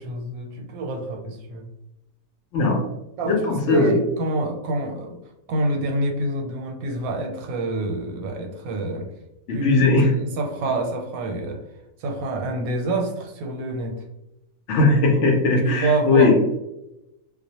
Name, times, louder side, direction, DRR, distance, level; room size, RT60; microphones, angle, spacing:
voice 1, 0.0-1.6 3.2-5.2 5.5-9.1 9.5-11.6 12.0-14.0 15.6-16.4, right 2 dB, 85° right, 2 dB, 1.0 m, -27 dB
voice 2, 2.5-2.9 3.3-3.9 9.5-10.1 14.7-16.4, left 3 dB, 65° left, 0 dB, 0.8 m, -18 dB
2.3 x 2.1 x 2.7 m, 0.91 s
omnidirectional pair, 1.5 m